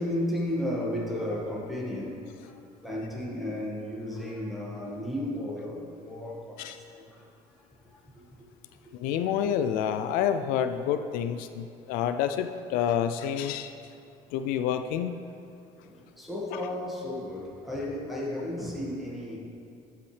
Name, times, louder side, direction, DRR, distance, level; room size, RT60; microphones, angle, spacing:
voice 1, 0.0-7.3 7.8-8.3 15.8-19.4, left 1 dB, ahead, -4 dB, 1.7 m, -34 dB
voice 2, 8.9-13.7 14.3-15.1, left 9 dB, 85° left, 9 dB, 0.4 m, -28 dB
13.5 x 5.7 x 3.3 m, 2.6 s
cardioid pair, 130°, 14 cm